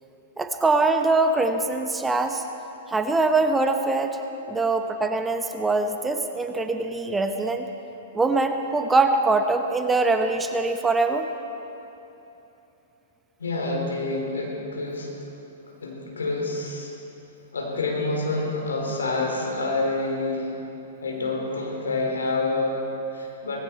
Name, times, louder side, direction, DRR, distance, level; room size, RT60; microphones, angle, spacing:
voice 1, 0.4-2.4 2.9-4.2 4.5-7.7 8.1-11.3, right 3 dB, 10° right, 6 dB, 0.9 m, -23 dB
voice 2, 13.4-15.1 15.8-16.9 17.5-20.5 21.0-23.6, left 2 dB, 80° left, -1 dB, 3.9 m, -27 dB
18.5 x 16.5 x 4.6 m, 3.0 s
hypercardioid pair, 110°, 0 cm